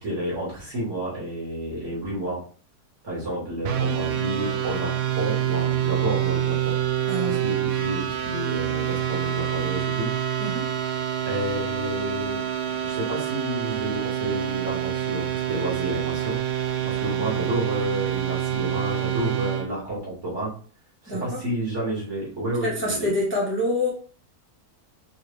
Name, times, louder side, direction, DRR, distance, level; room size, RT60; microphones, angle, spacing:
voice 1, 0.0-2.4 3.0-6.8 7.2-10.1 11.3-12.4 12.8-16.4 16.8-20.5 21.0-23.1, right 1 dB, 50° right, -6 dB, 2.4 m, -30 dB
sound 1, 3.6-19.7, right 11 dB, 80° right, 1.1 m, -26 dB
voice 2, 7.1-7.4 10.4-10.7 21.1-21.4 22.6-23.9, left 1 dB, 10° left, -5 dB, 1.0 m, -26 dB
5.2 x 2.5 x 3.2 m, 0.42 s
omnidirectional pair, 1.6 m